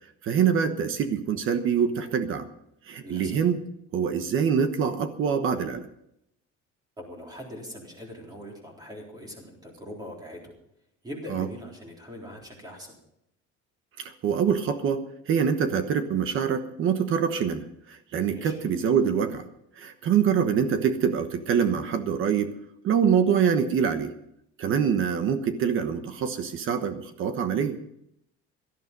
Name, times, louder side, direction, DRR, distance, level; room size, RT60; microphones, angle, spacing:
voice 1, 0.2-2.5 2.9-3.6 3.9-5.9 11.3-11.5 14.0-19.4 19.8-22.5 22.8-24.1 24.6-27.8, right 7 dB, 45° right, 9 dB, 1.2 m, -25 dB
voice 2, 3.0-3.4 7.0-10.5 11.0-13.0 18.3-18.6, equal, 15° right, -1 dB, 3.7 m, -42 dB
17.5 x 12.5 x 5.4 m, 0.77 s
cardioid pair, 180°, 30 cm